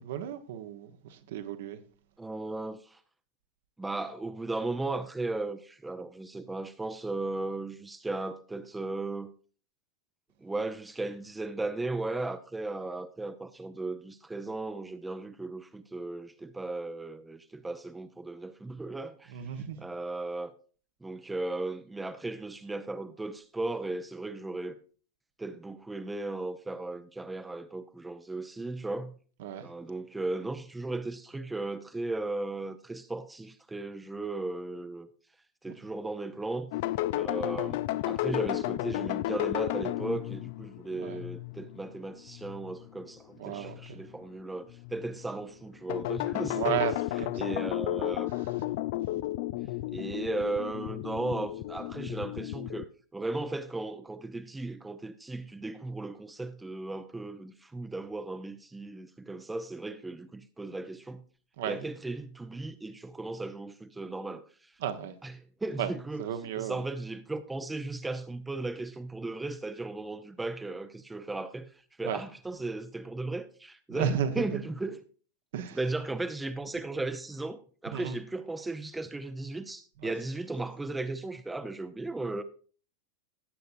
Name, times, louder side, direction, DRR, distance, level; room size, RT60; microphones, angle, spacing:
voice 1, 0.0-1.8 19.3-19.8 29.4-29.7 41.0-41.2 43.4-44.0 46.5-46.9 47.2-47.7 48.0-48.1 61.6-61.8 64.8-65.2 65.8-65.9 66.2-66.8 72.0-72.2 73.9-74.6 75.5-75.8 77.9-78.2 80.0-80.1, right 9 dB, 55° right, 1.0 m, -34 dB
voice 2, 2.2-3.0 3.8-9.3 10.4-20.5 21.0-24.8 25.4-29.1 29.6-35.1 35.6-36.7 37.1-46.8 47.4-48.3 49.9-52.9 53.1-61.2 61.6-64.7 65.2-66.2 66.6-75.0 75.7-82.4, right 2 dB, 10° right, 0.6 m, -36 dB
sound 1, 36.7-42.9 43.5-44.1 44.7-45.3 45.9-52.8, left 15 dB, 50° left, 0.4 m, -33 dB
17.0 x 7.9 x 2.6 m
figure-of-eight pair, 90°, 0 cm